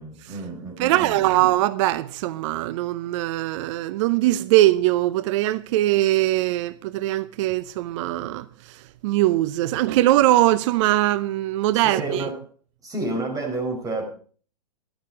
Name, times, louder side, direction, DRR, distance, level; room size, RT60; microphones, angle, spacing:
voice 1, 0.0-1.4 11.7-12.4 12.8-14.0, right 2 dB, 15° right, 5.3 m, -30 dB
voice 2, 0.8-12.2, right 15 dB, 45° right, 0.7 m, -21 dB
13.5 x 11.5 x 5.0 m
hypercardioid pair, 120°, 21 cm